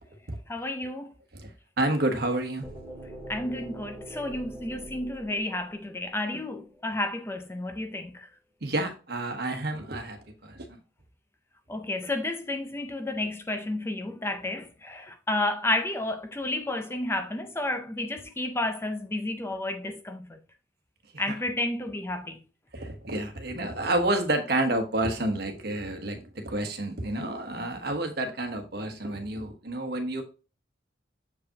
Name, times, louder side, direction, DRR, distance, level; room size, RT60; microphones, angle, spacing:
voice 1, 0.5-1.1 3.3-8.3 11.7-20.4 21.2-22.5, left 2 dB, 15° left, 0.5 m, -31 dB
voice 2, 1.8-2.7 8.6-10.2 10.4-10.8 21.3-21.4 22.7-30.2, right 1 dB, 60° right, 1.2 m, -29 dB
sound 1, 2.6-6.5, right 1 dB, ahead, 2.2 m, -43 dB
6.8 x 4.8 x 2.9 m
head